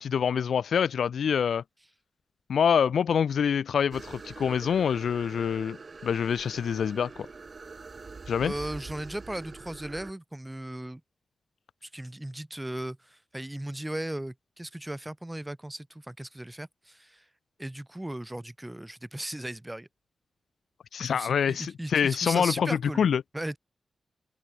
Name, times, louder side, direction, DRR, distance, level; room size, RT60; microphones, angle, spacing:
voice 1, 0.0-1.6 2.5-5.8 6.0-7.1 8.3-8.5 20.9-23.2, left 7 dB, 80° left, 0.8 m, -26 dB
sound 1, 3.9-10.1, right 4 dB, 50° right, 4.4 m, -44 dB
voice 2, 8.4-11.0 11.8-17.2 17.6-19.9 21.1-23.1 23.3-23.6, right 1 dB, 15° right, 6.6 m, -37 dB
open air
cardioid pair, 50°, 0 cm